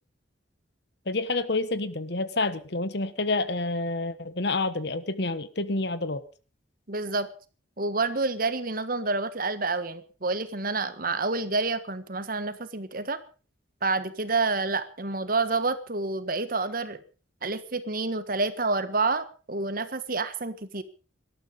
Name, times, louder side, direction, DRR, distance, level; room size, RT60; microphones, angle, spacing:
voice 1, 1.1-6.2, left 2 dB, 60° left, 14 dB, 1.3 m, -28 dB
voice 2, 6.9-7.3 7.8-13.2 13.8-17.0 17.4-20.8, right 3 dB, 45° right, 12 dB, 1.5 m, -28 dB
18.5 x 13.0 x 5.2 m, 0.36 s
head